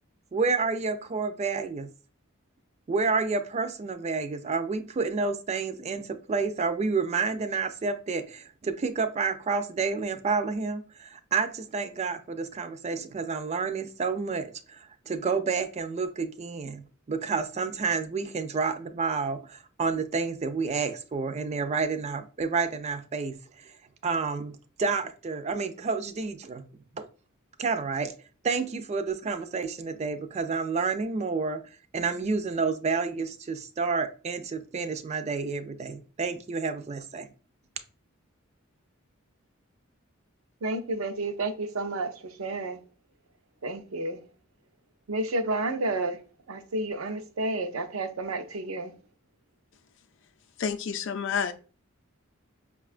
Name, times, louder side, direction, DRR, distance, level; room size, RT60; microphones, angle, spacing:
voice 1, 0.3-1.9 2.9-23.7 24.0-26.6 27.0-27.1 27.6-28.1 28.4-31.6 31.9-37.3, right 4 dB, 35° right, 0.3 m, -29 dB
voice 2, 40.6-42.8 43.6-44.2 45.1-46.2 46.5-48.9, right 2 dB, 85° right, 0.5 m, -31 dB
voice 3, 50.6-51.5, left 6 dB, 65° left, 0.4 m, -29 dB
5.4 x 2.3 x 2.4 m
head